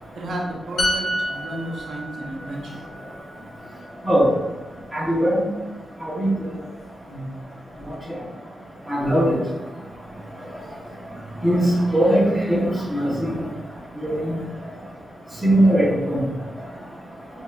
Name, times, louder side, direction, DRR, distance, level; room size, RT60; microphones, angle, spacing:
voice 1, 0.2-2.8, right 1 dB, 80° right, -3 dB, 0.9 m, -32 dB
sound 1, 0.8-4.4 4.7-4.9, equal, 75° left, 0.8 m, -29 dB
voice 2, 4.9-5.4 6.1-6.3 8.9-9.4 11.4-13.3 14.0-14.4 15.4-16.2, right 1 dB, 5° right, -5 dB, 1.2 m, -19 dB
6.3 x 2.8 x 2.5 m, 1.1 s
wide cardioid pair, 120°, 0 cm